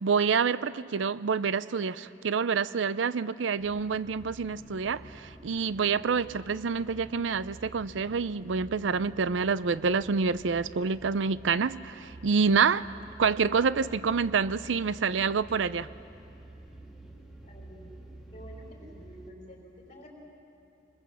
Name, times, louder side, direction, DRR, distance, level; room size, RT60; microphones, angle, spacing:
voice 1, 0.0-12.9 13.2-15.9, right 5 dB, 90° right, 16 dB, 0.5 m, -27 dB
sound 1, 3.6-19.3, right 1 dB, ahead, 2.0 m, -49 dB
voice 2, 17.4-17.9 18.3-20.1, equal, 40° left, 0 dB, 5.0 m, -49 dB
25.0 x 20.5 x 7.4 m, 2.9 s
head